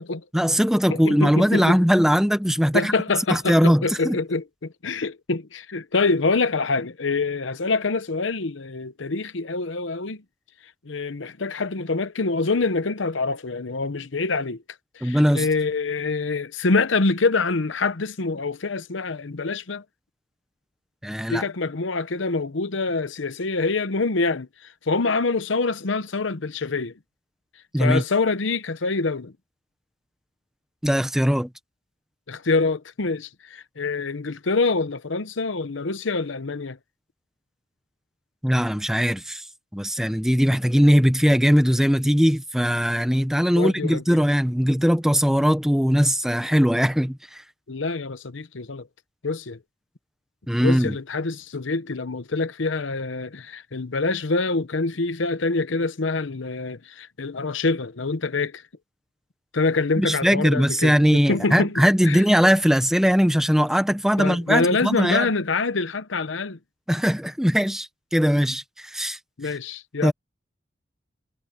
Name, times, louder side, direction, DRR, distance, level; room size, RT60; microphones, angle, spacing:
voice 1, 0.3-2.9 3.3-4.2 15.0-15.5 21.0-21.4 27.7-28.0 30.8-31.5 38.4-39.4 39.7-47.4 50.5-50.9 60.0-65.3 66.9-69.6 70.0-70.1, equal, 5° right, 1.0 m, -20 dB
voice 2, 0.9-1.8 2.7-10.2 10.8-14.6 14.9-19.8 21.3-24.5 24.9-26.9 27.8-29.3 32.3-36.8 43.5-44.0 47.7-48.9 49.2-49.6 50.6-58.6 59.5-62.2 64.2-66.6 69.4-70.1, left 3 dB, 85° left, 0.9 m, -25 dB
head